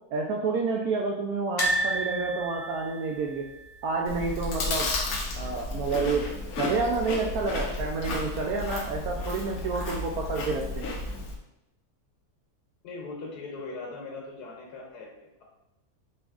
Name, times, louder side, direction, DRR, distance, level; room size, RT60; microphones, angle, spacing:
voice 1, 0.1-3.5 3.8-4.9 5.4-6.3 6.6-11.0, right 4 dB, 75° right, 0 dB, 1.0 m, -29 dB
sound 1, 1.6-4.6 4.9-5.1 5.4-5.5 6.7-7.2 7.7-7.8, right 1 dB, 45° left, 1.0 m, -31 dB
Chewing mastication, 4.1-11.4, left 2 dB, 65° left, 1.1 m, -33 dB
voice 2, 12.8-15.4, left 3 dB, 85° left, -1 dB, 1.4 m, -40 dB
7.5 x 2.6 x 2.4 m, 0.89 s
omnidirectional pair, 1.7 m